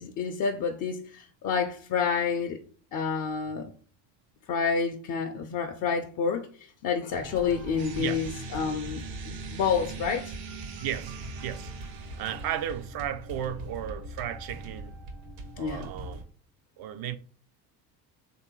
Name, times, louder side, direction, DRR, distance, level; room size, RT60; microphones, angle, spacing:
voice 1, 0.0-2.6 2.9-3.7 4.5-10.3 15.6-15.9, left 6 dB, 40° left, 0.5 m, -29 dB
sound 1, 7.1-16.2, right 2 dB, 70° right, 0.9 m, -42 dB
sound 2, 7.8-12.8, right 5 dB, 90° right, 0.7 m, -43 dB
voice 2, 10.8-11.2 11.4-11.7 12.2-14.9 15.6-16.2 16.8-17.2, right 10 dB, 50° right, 0.5 m, -34 dB
3.2 x 2.6 x 3.0 m
hypercardioid pair, 65°, 48 cm